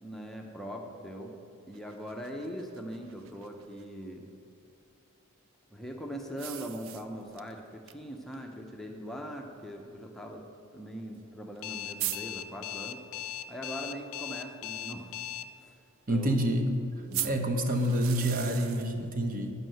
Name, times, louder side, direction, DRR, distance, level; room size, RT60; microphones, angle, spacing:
voice 1, 0.0-1.4 1.7-4.3 5.7-10.4 10.7-13.0 13.5-15.1 15.6-15.8 16.1-16.4 17.1-17.4, equal, ahead, 0 dB, 0.6 m, -41 dB
sound 1, 1.7-3.8 6.4-7.5 7.9-8.0 8.3-8.4 9.4-9.5 11.2-11.3 11.6-11.7 12.0-12.2 17.1-18.9, right 13 dB, 65° right, 0.4 m, -38 dB
Alarm, 11.6-15.4, left 11 dB, 80° left, 0.5 m, -38 dB
voice 2, 16.1-16.7 17.2-19.5, right 1 dB, 40° right, 4 dB, 1.0 m, -28 dB
9.6 x 5.5 x 7.7 m, 2.5 s
head